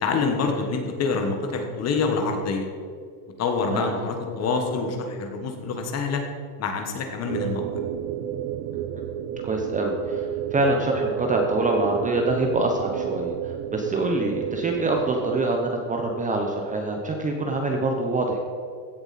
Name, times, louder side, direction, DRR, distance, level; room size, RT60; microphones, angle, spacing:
voice 1, 0.0-2.7 3.4-6.2 6.6-7.7, left 4 dB, 30° left, 4 dB, 1.5 m, -26 dB
sound 1, 7.3-15.4, right 10 dB, 65° right, 0.8 m, -31 dB
voice 2, 9.4-18.4, right 2 dB, 15° right, 2 dB, 0.9 m, -25 dB
15.5 x 7.8 x 4.2 m, 2.1 s
supercardioid pair, 140°, 50 cm